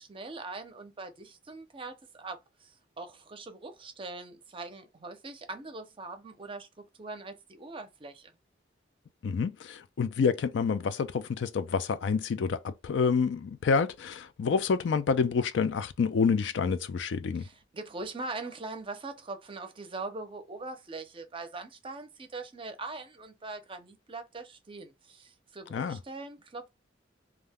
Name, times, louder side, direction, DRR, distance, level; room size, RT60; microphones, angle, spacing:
voice 1, 0.0-8.3 17.4-26.7, right 3 dB, 30° right, 0.5 m, -42 dB
voice 2, 9.2-17.5 25.7-26.0, left 5 dB, 75° left, 0.4 m, -28 dB
2.4 x 2.1 x 3.4 m
head